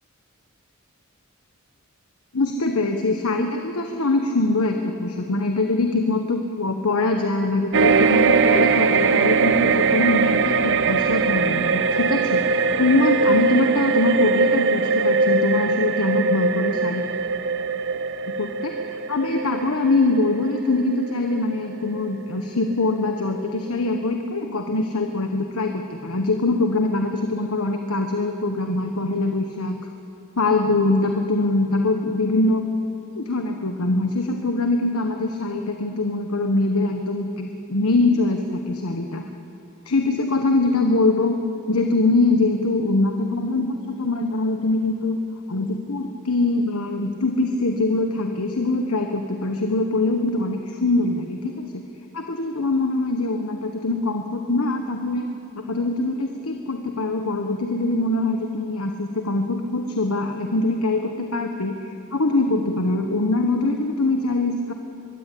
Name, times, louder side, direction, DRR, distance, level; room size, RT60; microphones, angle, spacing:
voice 1, 2.3-17.0 18.4-29.8 30.4-32.6 33.2-39.2 39.8-41.3 41.7-45.2 45.5-51.8 52.1-55.3 55.5-61.7 62.1-64.7, left 2 dB, 90° left, 4 dB, 1.3 m, -23 dB
sound 1, 7.7-22.3 22.7-22.8, right 4 dB, 60° right, 0.7 m, -21 dB
23.0 x 21.5 x 8.6 m, 2.9 s
head